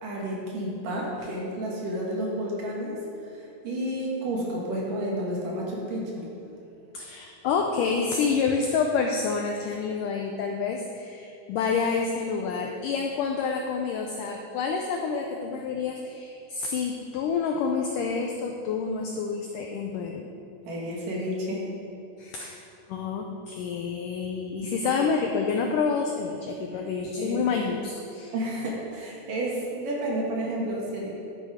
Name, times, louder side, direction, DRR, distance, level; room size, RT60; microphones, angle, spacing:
voice 1, 0.0-6.3 20.6-21.7 24.8-25.0 26.7-26.8 27.2-27.4 28.3-31.1, right 1 dB, 60° right, -4 dB, 3.2 m, -31 dB
voice 2, 6.9-20.3 22.2-22.6 22.9-28.3, left 5 dB, 85° left, 2 dB, 1.8 m, -28 dB
11.5 x 8.1 x 5.0 m, 2.7 s
omnidirectional pair, 4.5 m